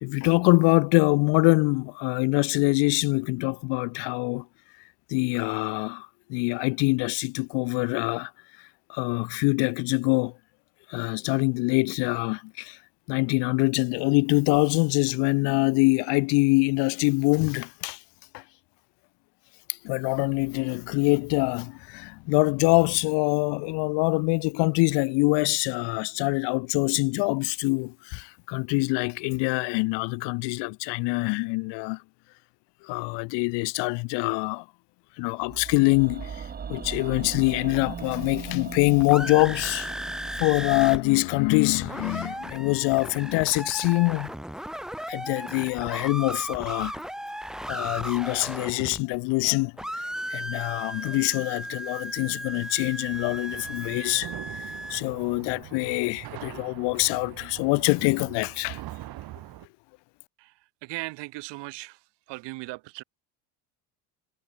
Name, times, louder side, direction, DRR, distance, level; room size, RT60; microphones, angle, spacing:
voice 1, 0.0-4.5 5.1-8.3 8.9-10.3 10.9-12.8 13.1-18.0 18.3-18.4 19.8-32.0 32.8-34.6 35.2-39.9 40.4-44.3 45.1-47.0 47.7-58.8, left 28 dB, 70° left, 0.6 m, -24 dB
sound 1, 35.4-45.5 45.8-45.9, right 7 dB, 20° right, 1.2 m, -41 dB
sound 2, 38.7-41.0 41.3-41.4 41.6-49.5 49.8-55.0, equal, ahead, 1.6 m, -36 dB
sound 3, 53.1-59.7, right 16 dB, 55° right, 2.8 m, -42 dB
voice 2, 60.8-62.0 62.3-63.0, right 22 dB, 70° right, 3.5 m, -37 dB
cardioid pair, 140°, 44 cm